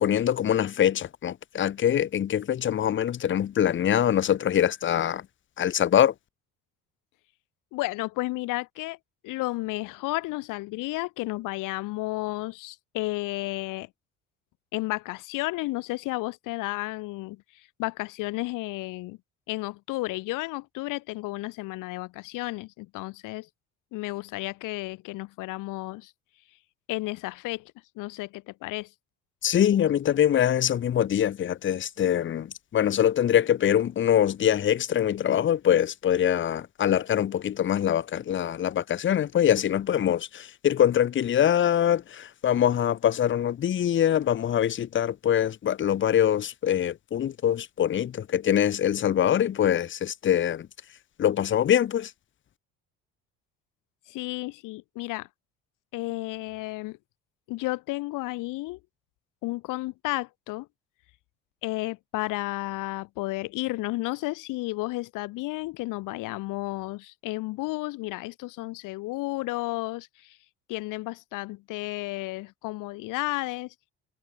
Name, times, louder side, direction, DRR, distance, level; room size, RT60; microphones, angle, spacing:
voice 1, 0.0-5.2 5.6-6.1 29.4-50.7 51.2-52.1, left 10 dB, 40° left, 0.9 m, -24 dB
voice 2, 7.7-9.0 9.2-13.9 14.7-19.2 19.5-23.5 23.9-26.1 26.9-28.9 54.1-55.3 55.9-57.0 57.5-58.8 59.4-60.7 61.6-70.4 70.7-73.7, left 20 dB, 75° left, 2.8 m, -32 dB
supercardioid pair, 90°, 31 cm